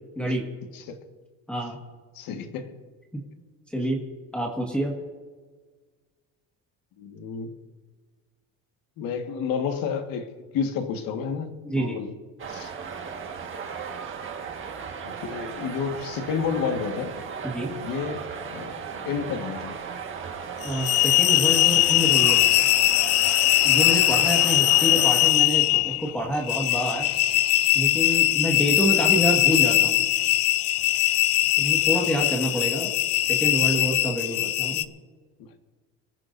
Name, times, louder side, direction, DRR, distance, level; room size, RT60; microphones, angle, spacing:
voice 1, 2.1-2.7 7.0-7.5 9.0-10.3 10.5-12.1 12.5-12.7 15.0-17.2 17.7-19.8 29.1-29.2, left 6 dB, 70° left, 1.8 m, -31 dB
voice 2, 4.3-4.9 11.6-12.0 17.4-17.7 20.6-22.4 23.6-27.1 27.7-30.0 31.6-34.9, right 1 dB, 5° left, 1.7 m, -27 dB
sound 1, 12.4-25.3, right 6 dB, 35° right, 1.7 m, -36 dB
sound 2, 20.6-34.8, left 16 dB, 45° left, 0.5 m, -21 dB
25.0 x 14.5 x 2.7 m
cardioid pair, 155°, 36 cm